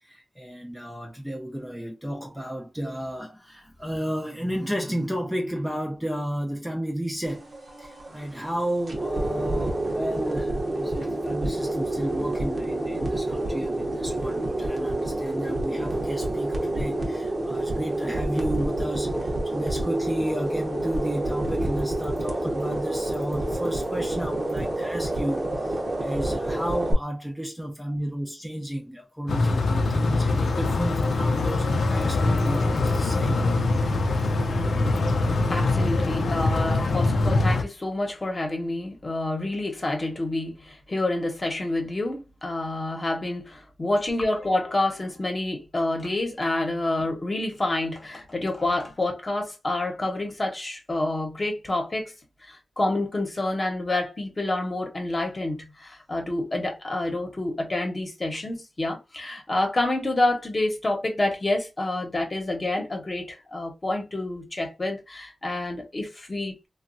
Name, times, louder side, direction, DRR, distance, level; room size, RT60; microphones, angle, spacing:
voice 1, 0.1-7.5 7.8-33.4, equal, 5° right, 0.5 m, -32 dB
sound 1, 7.3-26.9, right 1 dB, 45° right, 0.9 m, -28 dB
sound 2, 29.3-37.6, left 2 dB, 80° left, 0.5 m, -23 dB
voice 2, 35.5-52.1 52.4-66.7, left 2 dB, 35° left, 1.0 m, -28 dB
3.0 x 2.3 x 2.6 m
wide cardioid pair, 80°, 0 cm